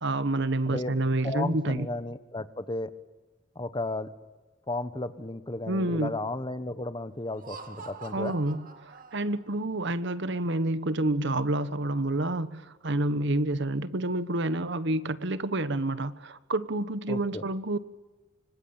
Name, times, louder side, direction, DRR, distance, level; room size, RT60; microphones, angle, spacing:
voice 1, 0.0-1.9 5.7-6.1 8.1-17.8, right 2 dB, 60° right, 1.2 m, -28 dB
voice 2, 0.7-1.0 1.2-2.9 3.5-4.1 4.7-8.4 17.1-17.4, left 2 dB, 25° left, 1.2 m, -34 dB
Laughter, 7.3-9.6, right 4 dB, 45° right, 2.5 m, -45 dB
25.5 x 25.5 x 8.9 m
head